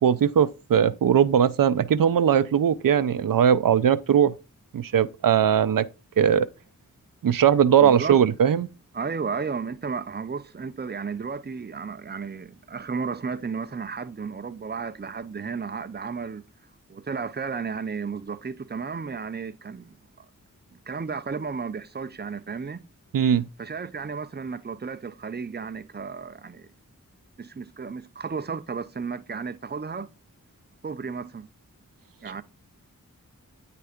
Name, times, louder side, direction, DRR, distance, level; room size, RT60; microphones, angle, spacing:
voice 1, 0.0-4.3 4.7-5.9 6.2-6.5 7.2-8.7 23.1-23.5, right 8 dB, 85° right, 0.5 m, -20 dB
voice 2, 7.8-8.2 8.9-16.4 16.9-20.0 20.7-22.8 23.6-26.7 27.4-30.1 30.8-31.5 32.2-32.4, right 5 dB, 30° right, 0.6 m, -33 dB
9.4 x 3.3 x 5.0 m
wide cardioid pair, 60°, 32 cm